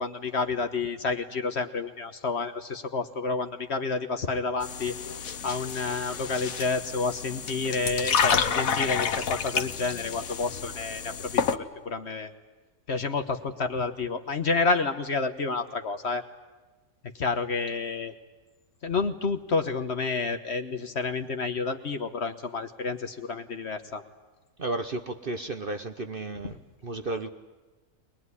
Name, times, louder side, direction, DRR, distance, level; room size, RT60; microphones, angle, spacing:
voice 1, 0.0-4.9 5.4-12.3 12.9-16.2 17.2-18.1 18.8-24.0, left 4 dB, 45° left, 8 dB, 1.4 m, -29 dB
sound 1, 4.6-11.6, left 6 dB, 65° left, 1.4 m, -29 dB
voice 2, 24.6-26.6 26.8-27.3, right 2 dB, 40° right, 7 dB, 1.0 m, -33 dB
22.5 x 21.0 x 9.7 m, 1.2 s
omnidirectional pair, 1.6 m